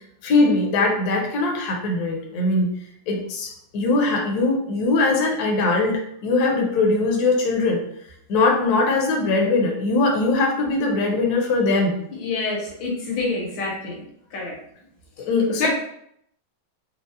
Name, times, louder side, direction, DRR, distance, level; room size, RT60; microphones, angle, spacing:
voice 1, 0.2-2.7 3.1-7.8 8.3-11.9 15.3-15.7, left 3 dB, 65° left, 0 dB, 1.1 m, -21 dB
voice 2, 12.1-14.0 14.3-14.5 15.5-15.7, left 3 dB, 85° left, -2 dB, 1.7 m, -27 dB
4.4 x 2.0 x 2.6 m, 0.71 s
omnidirectional pair, 2.0 m